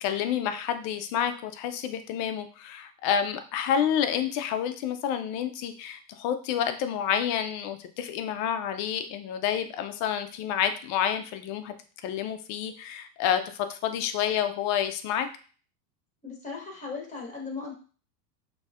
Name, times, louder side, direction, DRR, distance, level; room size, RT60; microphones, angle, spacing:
voice 1, 0.0-11.7 12.0-15.3, left 9 dB, 40° left, 8 dB, 0.4 m, -29 dB
voice 2, 16.2-17.7, left 4 dB, 15° left, 0 dB, 1.3 m, -37 dB
6.2 x 2.7 x 2.4 m, 0.39 s
supercardioid pair, 125°, 49 cm